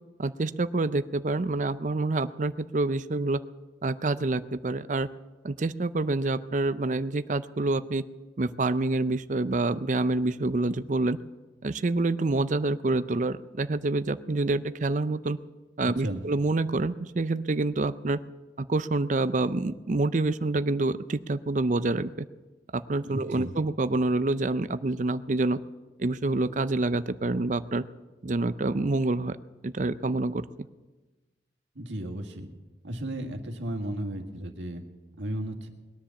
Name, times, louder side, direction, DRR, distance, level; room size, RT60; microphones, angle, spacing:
voice 1, 0.2-3.4 3.8-5.1 5.4-8.0 8.4-11.2 11.6-15.4 15.8-18.2 18.6-22.1 22.7-25.6 26.0-27.8 28.2-29.4 29.6-30.4, right 2 dB, 45° right, 13 dB, 0.5 m, -27 dB
voice 2, 15.8-16.2 23.0-23.5 31.8-32.5 32.8-34.8 35.2-35.7, right 1 dB, 90° right, 3 dB, 2.0 m, -34 dB
20.5 x 10.0 x 7.0 m, 1.2 s
head